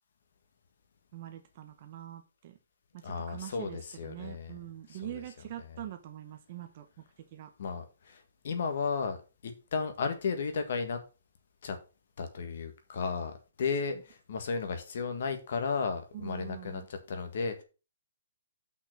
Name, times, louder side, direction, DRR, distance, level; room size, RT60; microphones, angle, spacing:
voice 1, 1.1-2.6 2.9-6.9 7.3-7.5 16.1-16.9, right 13 dB, 25° right, 8 dB, 0.9 m, -44 dB
voice 2, 3.0-4.6 5.0-5.1 7.6-9.2 9.4-11.0 11.6-11.8 12.2-17.6, left 5 dB, 40° left, 7 dB, 1.6 m, -34 dB
6.6 x 5.9 x 6.1 m, 0.32 s
hypercardioid pair, 180°, 0 cm